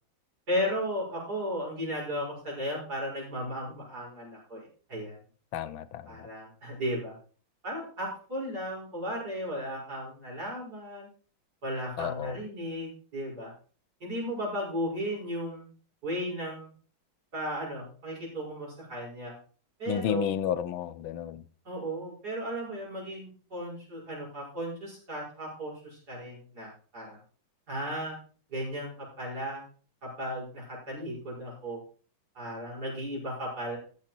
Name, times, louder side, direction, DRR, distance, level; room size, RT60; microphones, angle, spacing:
voice 1, 0.5-5.2 6.1-7.1 7.6-11.1 11.6-13.5 14.0-15.7 16.0-16.7 17.3-19.3 19.8-20.3 21.6-27.2 27.7-28.2 28.5-28.9 29.2-29.6 30.0-31.8 32.3-33.8, equal, 50° right, 6.6 m, -35 dB
voice 2, 5.5-6.3 12.0-12.4 19.9-21.4, left 9 dB, 90° left, 1.6 m, -32 dB
14.5 x 7.1 x 4.5 m
omnidirectional pair, 2.1 m